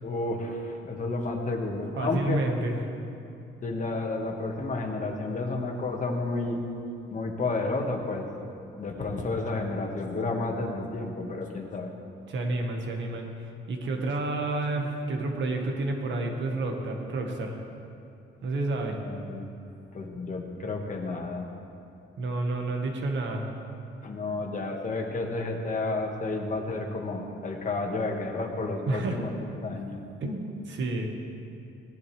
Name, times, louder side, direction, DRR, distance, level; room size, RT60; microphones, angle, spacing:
voice 1, 0.0-2.4 3.6-6.6 7.1-8.3 8.8-11.9 19.0-19.5 19.9-21.5 24.0-30.0, left 2 dB, 40° left, 1 dB, 1.7 m, -31 dB
voice 2, 2.0-2.8 12.3-13.3 13.7-17.6 18.4-19.0 22.2-23.5 28.9-29.2 30.2-31.1, right 2 dB, 70° right, 3 dB, 1.6 m, -30 dB
18.0 x 10.5 x 3.5 m, 2.7 s
cardioid pair, 90°, 20 cm